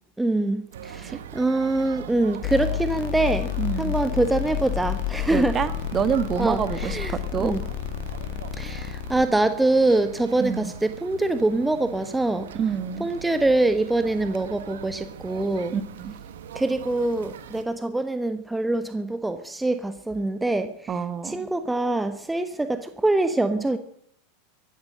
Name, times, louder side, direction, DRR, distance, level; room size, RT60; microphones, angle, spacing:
voice 1, 0.2-3.5 3.8-5.6 6.4-7.6 8.6-12.5 13.0-15.7 16.5-20.9 21.2-23.8, right 2 dB, 5° right, 10 dB, 1.2 m, -24 dB
sound 1, 0.7-17.7, right 8 dB, 80° right, 1.3 m, -41 dB
sound 2, 2.4-9.3, left 12 dB, 60° left, 2.1 m, -30 dB
voice 2, 3.6-3.9 5.3-7.5 10.4-10.7 12.5-13.1 15.7-16.2 20.9-21.5, right 7 dB, 30° right, 13 dB, 1.5 m, -27 dB
15.0 x 12.0 x 7.8 m, 0.66 s
hypercardioid pair, 105°, 0 cm